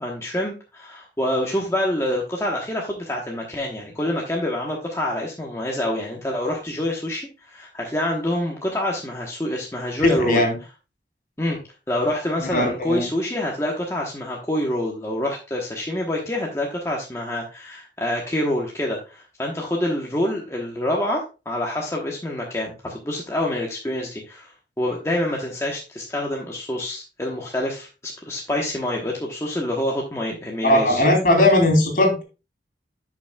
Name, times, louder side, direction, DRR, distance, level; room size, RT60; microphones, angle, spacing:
voice 1, 0.0-10.4 11.4-11.6 11.9-31.0, left 1 dB, 15° left, -2 dB, 1.1 m, -26 dB
voice 2, 10.0-10.6 12.4-13.0 30.6-32.2, left 1 dB, 50° left, 2 dB, 2.7 m, -18 dB
11.0 x 6.1 x 2.3 m, 0.30 s
head